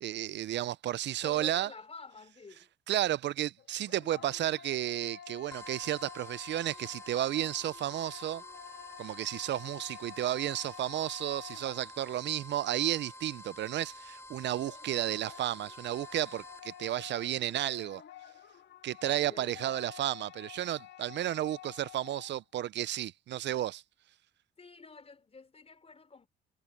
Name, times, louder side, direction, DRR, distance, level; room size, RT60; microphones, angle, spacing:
voice 1, 0.0-1.7 2.9-8.4 9.0-18.0 18.8-23.8, right 13 dB, 65° right, 0.5 m, -33 dB
voice 2, 1.2-2.7 19.0-19.8 24.6-26.3, left 4 dB, 30° left, 4.8 m, -49 dB
sound 1, 3.6-12.3 14.6-22.4, left 10 dB, 65° left, 1.9 m, -51 dB
sound 2, 5.5-16.9, left 2 dB, 15° left, 3.8 m, -49 dB
cardioid pair, 90°, 20 cm